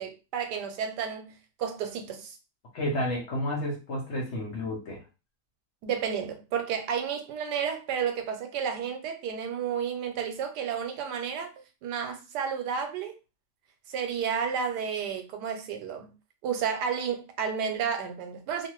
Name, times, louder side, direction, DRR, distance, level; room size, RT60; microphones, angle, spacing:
voice 1, 0.0-2.4 5.8-11.5 11.8-13.2 13.9-16.1 16.4-18.7, right 7 dB, 85° right, 1.2 m, -31 dB
voice 2, 2.7-5.0, left 1 dB, 55° left, 0.9 m, -31 dB
2.7 x 2.5 x 3.0 m
omnidirectional pair, 1.7 m